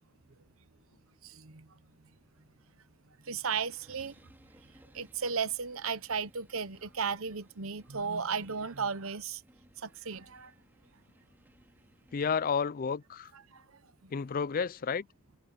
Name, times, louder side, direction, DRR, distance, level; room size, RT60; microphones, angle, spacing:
voice 1, 1.2-1.7 3.2-4.2 4.9-9.4 9.8-10.5 13.5-13.6 14.0-14.1, right 5 dB, 65° right, 1.0 m, -35 dB
sound 1, 3.4-12.4, equal, 10° right, 3.4 m, -63 dB
voice 2, 12.1-13.3 14.1-15.1, left 6 dB, 40° left, 0.3 m, -31 dB
head